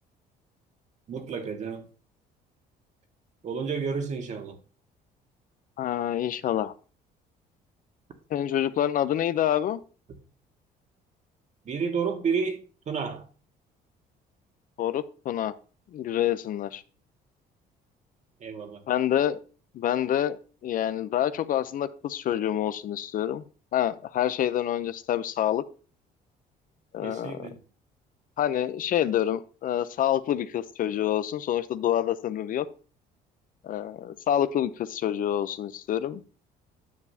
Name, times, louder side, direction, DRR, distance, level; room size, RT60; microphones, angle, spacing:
voice 1, 1.1-1.8 3.4-4.6 11.6-13.2 18.4-18.8 27.0-27.6, right 5 dB, 45° right, 1.5 m, -31 dB
voice 2, 5.8-6.7 8.3-9.8 14.8-15.5 15.9-16.8 18.9-19.4 19.7-23.4 23.7-25.6 26.9-27.5 28.4-32.7 33.6-36.2, left 11 dB, 55° left, 0.6 m, -27 dB
9.6 x 6.9 x 2.7 m
cardioid pair, 110°, 17 cm